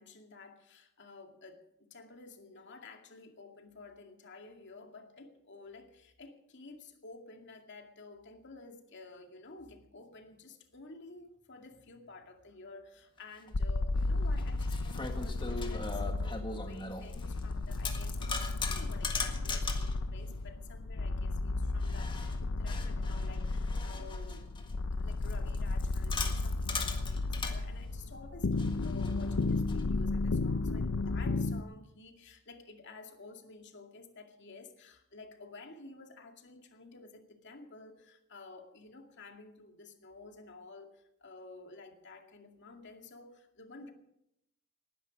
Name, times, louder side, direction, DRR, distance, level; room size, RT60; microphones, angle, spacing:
voice 1, 0.0-43.9, left 3 dB, 55° left, 4 dB, 2.2 m, -52 dB
sound 1, 13.5-31.6, left 3 dB, 75° left, 0.7 m, -33 dB
sound 2, 13.5-13.6 14.3-17.4 17.7-20.0 21.8-24.7 25.2-27.6 28.6-29.8, left 4 dB, 25° left, 1.7 m, -40 dB
19.5 x 11.0 x 6.3 m, 0.79 s
head